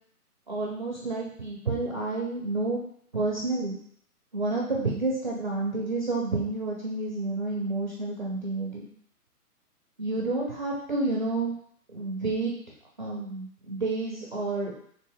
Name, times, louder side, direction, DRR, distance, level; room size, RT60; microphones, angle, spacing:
voice 1, 0.5-2.8 3.1-3.8 4.3-8.9 10.0-11.6 11.9-12.5 13.0-14.8, right 3 dB, 35° right, -3 dB, 0.4 m, -29 dB
3.5 x 2.5 x 3.4 m, 0.63 s
figure-of-eight pair, 145°, 46 cm